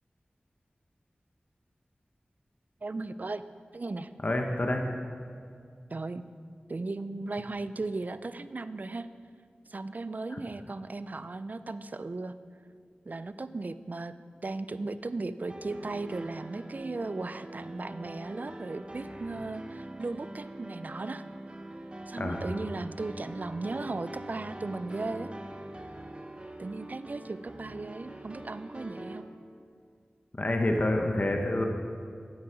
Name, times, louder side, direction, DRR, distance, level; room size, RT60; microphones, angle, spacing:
voice 1, 2.8-3.4 3.7-4.1 5.9-6.2 6.7-9.1 9.7-12.3 13.1-14.1 14.4-21.2 22.1-25.3 26.6-29.3, right 3 dB, 50° right, 13 dB, 0.4 m, -36 dB
voice 2, 4.2-4.9 10.3-10.4 22.2-22.4 30.4-31.6, left 1 dB, 45° left, 3 dB, 0.9 m, -27 dB
sound 1, 15.5-29.2, right 1 dB, 30° right, 0.8 m, -43 dB
8.8 x 7.9 x 5.0 m, 2.3 s
cardioid pair, 45°, 4 cm